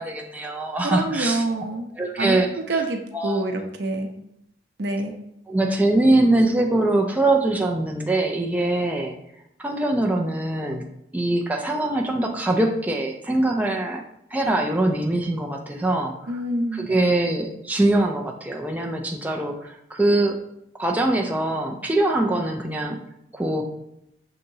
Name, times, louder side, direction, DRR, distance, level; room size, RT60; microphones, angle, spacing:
voice 1, 0.0-1.4 1.9-2.5 3.1-3.4 5.5-9.1 9.6-10.8 11.1-14.0 14.3-16.4 16.7-20.4 20.8-23.0 23.3-23.7, right 2 dB, 10° right, 2 dB, 0.4 m, -23 dB
voice 2, 0.8-1.9 2.2-2.4 2.7-4.1 4.8-5.2 16.3-16.9, right 2 dB, 75° right, 5 dB, 0.6 m, -26 dB
6.4 x 2.8 x 2.7 m, 0.79 s
head